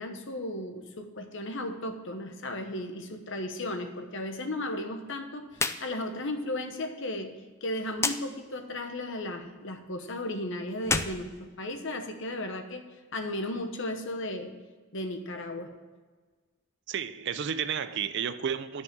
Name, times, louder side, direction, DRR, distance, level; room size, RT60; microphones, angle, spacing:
voice 1, 0.0-12.9 13.1-14.5 14.9-15.7, left 1 dB, 60° left, 1.1 m, -35 dB
sound 1, 5.5-5.8 6.1-6.2 8.0-8.2 10.8-12.1, left 4 dB, 10° left, 0.3 m, -30 dB
voice 2, 16.9-18.8, right 7 dB, 55° right, 0.5 m, -32 dB
10.5 x 5.7 x 7.5 m
head